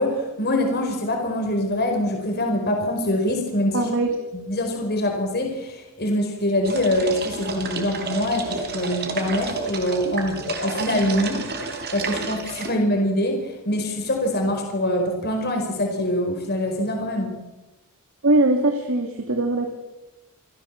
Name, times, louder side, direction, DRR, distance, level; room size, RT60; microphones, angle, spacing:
voice 1, 0.0-3.9 4.3-13.4 13.6-17.3, left 1 dB, 45° left, 2 dB, 4.6 m, -24 dB
voice 2, 3.7-4.2 18.2-19.7, right 2 dB, 65° right, 4 dB, 2.5 m, -21 dB
sound 1, 6.6-12.7, right 4 dB, 45° right, 4.1 m, -31 dB
27.0 x 16.0 x 7.4 m, 1.0 s
head